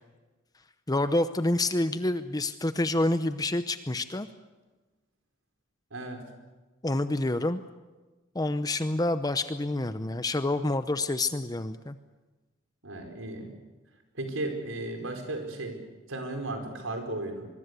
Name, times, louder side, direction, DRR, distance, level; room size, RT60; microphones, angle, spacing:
voice 1, 0.9-4.3 6.8-7.6 8.3-11.9, left 2 dB, 20° left, 11 dB, 0.8 m, -28 dB
voice 2, 5.9-6.2 12.8-13.5 14.2-15.8 16.1-17.5, right 2 dB, 85° right, 5 dB, 4.8 m, -35 dB
24.0 x 23.0 x 8.3 m, 1.2 s
head